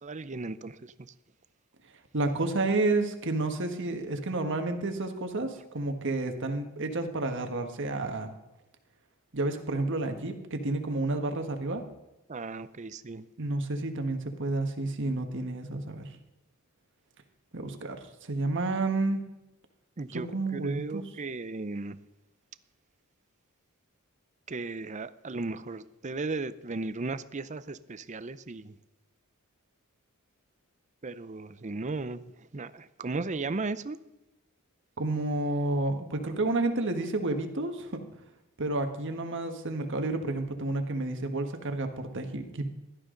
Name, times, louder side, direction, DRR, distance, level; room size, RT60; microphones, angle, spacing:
voice 1, 0.0-1.1 12.3-13.3 20.0-22.0 24.5-28.8 31.0-34.0, right 3 dB, 35° right, 14 dB, 0.6 m, -36 dB
voice 2, 2.1-8.3 9.3-11.8 13.4-16.1 17.5-19.2 20.1-21.0 35.0-38.0 38.6-42.7, right 2 dB, 60° right, 6 dB, 1.5 m, -30 dB
16.5 x 12.0 x 3.9 m, 0.98 s
head